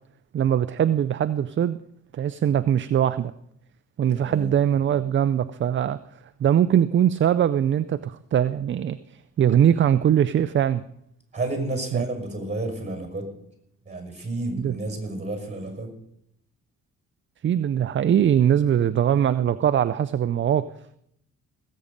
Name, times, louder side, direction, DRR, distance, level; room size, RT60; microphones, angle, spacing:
voice 1, 0.3-1.8 2.1-3.3 4.0-6.0 6.4-9.0 9.4-10.8 11.9-12.0 14.6-14.8 17.4-20.7, right 9 dB, 40° right, 13 dB, 0.5 m, -21 dB
voice 2, 4.1-4.5 11.3-13.3 13.9-15.9, right 2 dB, 25° right, 3 dB, 5.6 m, -31 dB
19.0 x 8.6 x 5.2 m, 0.74 s
cardioid pair, 90°, 30 cm